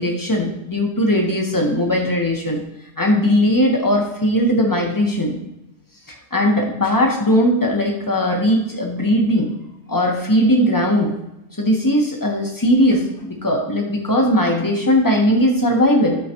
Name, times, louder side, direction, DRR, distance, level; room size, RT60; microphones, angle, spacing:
voice 1, 0.0-2.6 3.0-5.3 6.3-9.5 9.9-11.1 11.6-16.2, equal, 15° left, 0 dB, 1.3 m, -18 dB
12.0 x 5.0 x 3.0 m, 0.87 s
omnidirectional pair, 1.2 m